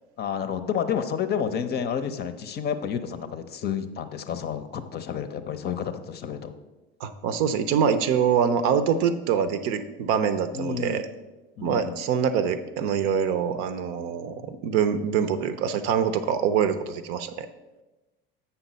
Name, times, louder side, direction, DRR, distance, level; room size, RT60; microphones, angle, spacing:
voice 1, 0.2-6.5 10.5-11.1 11.6-12.0, left 7 dB, 35° left, 10 dB, 0.7 m, -30 dB
voice 2, 7.0-11.0 11.6-17.5, right 7 dB, 50° right, 11 dB, 0.7 m, -24 dB
8.0 x 5.7 x 4.1 m, 1.1 s
figure-of-eight pair, 70°, 29 cm